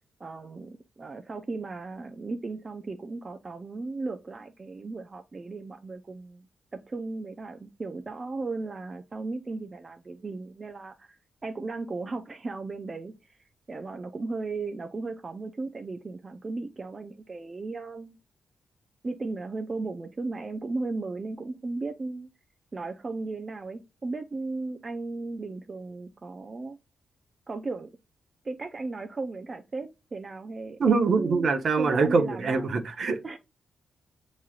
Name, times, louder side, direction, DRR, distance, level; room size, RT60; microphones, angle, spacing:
voice 1, 0.2-13.4 13.7-18.2 19.0-22.3 22.7-26.8 27.5-27.9 28.4-31.5 31.8-32.7 33.2-33.4, right 3 dB, 35° right, 0.5 m, -36 dB
voice 2, 30.8-33.2, right 4 dB, 60° right, 0.9 m, -24 dB
7.2 x 3.1 x 2.4 m
cardioid pair, 85°, 0 cm